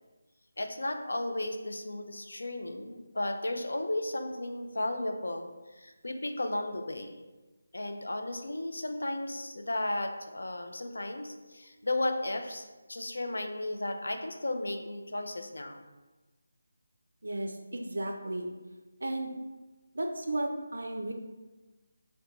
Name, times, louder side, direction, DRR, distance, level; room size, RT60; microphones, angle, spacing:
voice 1, 0.6-7.2 7.7-15.8, left 1 dB, 85° left, 5 dB, 0.4 m, -34 dB
voice 2, 17.2-18.5 19.0-19.3 19.9-21.1, right 1 dB, 85° right, 3 dB, 0.4 m, -34 dB
2.9 x 2.1 x 3.8 m, 1.2 s
figure-of-eight pair, 170°, 0 cm